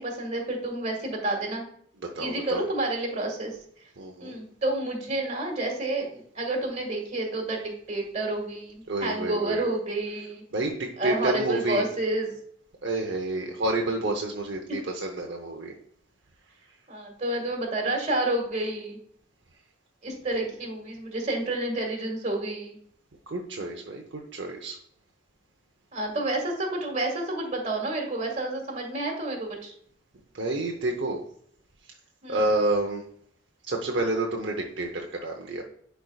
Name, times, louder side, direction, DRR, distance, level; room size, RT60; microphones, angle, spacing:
voice 1, 0.0-1.6 2.2-3.6 4.2-10.4 11.0-12.3 14.7-14.8 16.9-19.0 20.0-22.8 25.9-29.7 32.2-32.4, right 2 dB, 35° right, 1 dB, 1.9 m, -29 dB
voice 2, 2.1-2.6 4.0-4.4 8.9-9.7 10.5-11.8 12.8-15.7 23.3-24.8 30.3-31.2 32.3-33.0 33.7-35.6, right 2 dB, 65° right, 1 dB, 0.8 m, -29 dB
10.5 x 4.6 x 2.3 m, 0.63 s
head